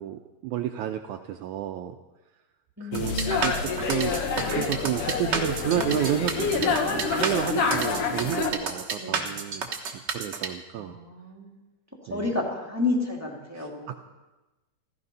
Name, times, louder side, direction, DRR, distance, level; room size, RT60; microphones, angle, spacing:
voice 1, 0.0-2.0 2.8-3.1 3.4-11.0 12.1-12.3 13.5-14.0, right 11 dB, 85° right, 6 dB, 1.7 m, -31 dB
voice 2, 2.8-3.4 9.0-9.4 10.7-11.5 12.1-13.9, left 2 dB, 5° right, -1 dB, 1.5 m, -31 dB
sound 1, 2.9-8.5, left 5 dB, 65° left, 2.9 m, -27 dB
sound 2, 2.9-10.5, right 5 dB, 65° right, 1.1 m, -31 dB
15.0 x 15.0 x 5.4 m, 1.1 s
omnidirectional pair, 4.1 m